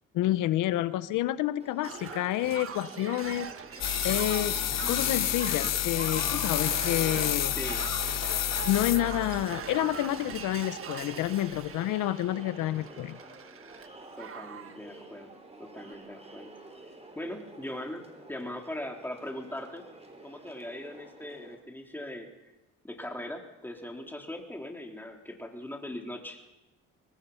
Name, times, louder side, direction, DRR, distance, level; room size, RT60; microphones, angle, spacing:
voice 1, 0.1-4.6 4.9-7.6 8.6-13.2, left 14 dB, 90° left, 15 dB, 0.7 m, -29 dB
Crowd, 1.6-21.5, right 2 dB, 20° right, 4.6 m, -49 dB
Shatter, 1.8-13.9 14.2-14.8 15.8-15.9, right 7 dB, 45° right, 1.4 m, -41 dB
sound 1, 3.8-9.5, left 12 dB, 60° left, 0.8 m, -29 dB
voice 2, 7.5-7.9 14.2-15.3 15.6-16.5 17.2-19.8 20.2-22.3 22.8-26.4, left 1 dB, 5° left, 1 dB, 3.8 m, -40 dB
24.0 x 19.5 x 5.7 m, 1.0 s
cardioid pair, 90°, 30 cm